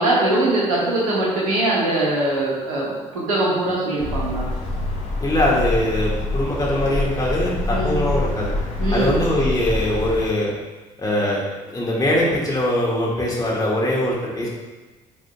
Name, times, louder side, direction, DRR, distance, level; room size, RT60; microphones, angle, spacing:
voice 1, 0.0-4.5 7.7-8.0 8.8-9.2, right 2 dB, 75° right, -5 dB, 1.8 m, -21 dB
sound 1, 4.0-10.3, left 2 dB, 45° left, 1.8 m, -26 dB
voice 2, 5.2-8.5 8.9-10.5 11.0-11.4 11.7-14.5, left 1 dB, 20° left, -5 dB, 2.1 m, -22 dB
9.6 x 5.0 x 2.4 m, 1.2 s
figure-of-eight pair, 45°, 18 cm